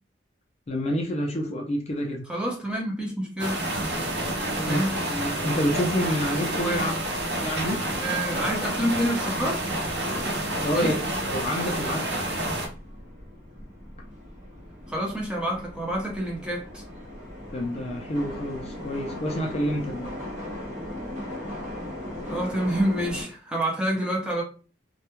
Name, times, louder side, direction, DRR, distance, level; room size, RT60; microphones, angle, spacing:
voice 1, 0.7-2.3 4.7-6.9 7.4-7.8 10.6-12.1 17.5-20.1, equal, 35° left, 0.4 m, -28 dB
voice 2, 2.3-3.7 4.5-5.0 6.6-6.8 8.0-9.7 10.7-10.9 14.9-16.8 22.3-24.4, right 1 dB, 5° right, 0.6 m, -28 dB
sound 1, 3.4-12.7, right 1 dB, 90° right, 0.7 m, -29 dB
sound 2, 7.8-23.2, left 1 dB, 50° right, 1.0 m, -40 dB
2.2 x 2.1 x 2.9 m
head